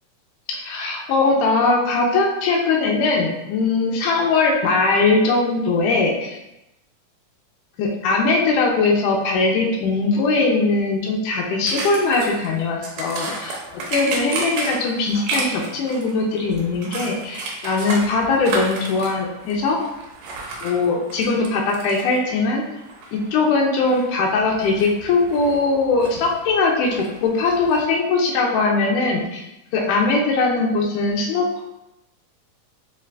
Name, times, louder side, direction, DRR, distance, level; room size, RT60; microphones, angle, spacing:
voice 1, 0.5-6.4 7.8-19.8 20.6-22.6 23.1-29.4 29.7-31.6, left 3 dB, 80° left, 0 dB, 2.1 m, -20 dB
sound 1, 11.7-27.8, right 3 dB, 90° right, 2.4 m, -33 dB
5.8 x 2.4 x 3.2 m, 0.92 s
omnidirectional pair, 3.7 m